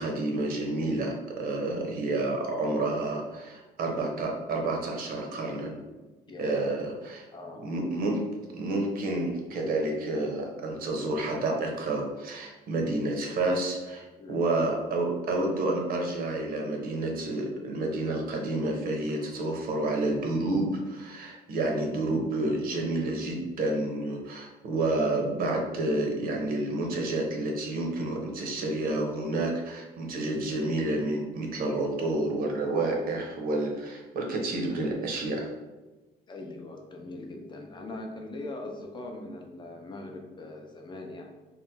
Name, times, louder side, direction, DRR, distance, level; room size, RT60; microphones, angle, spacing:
voice 1, 0.0-5.8 6.4-7.2 7.6-35.5, right 2 dB, 60° right, 1 dB, 0.7 m, -29 dB
voice 2, 6.3-6.8 7.3-7.6 14.2-14.4 36.3-41.3, left 2 dB, 25° left, 2 dB, 0.5 m, -41 dB
2.8 x 2.1 x 3.3 m, 1.1 s
cardioid pair, 110°, 17 cm